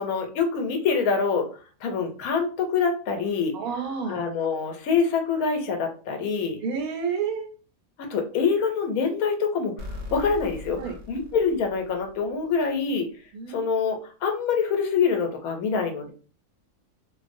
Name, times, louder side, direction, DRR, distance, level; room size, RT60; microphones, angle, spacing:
voice 1, 0.0-1.5 1.8-3.5 4.1-6.6 8.0-10.8 11.1-13.1 13.5-16.1, left 5 dB, 80° left, 4 dB, 1.0 m, -25 dB
voice 2, 3.5-4.2 6.6-7.5 10.8-10.9 13.3-13.8, right 6 dB, 85° right, 5 dB, 1.1 m, -30 dB
sound 1, 9.8-12.5, left 2 dB, 65° right, 0.8 m, -40 dB
2.5 x 2.0 x 2.5 m, 0.38 s
omnidirectional pair, 1.5 m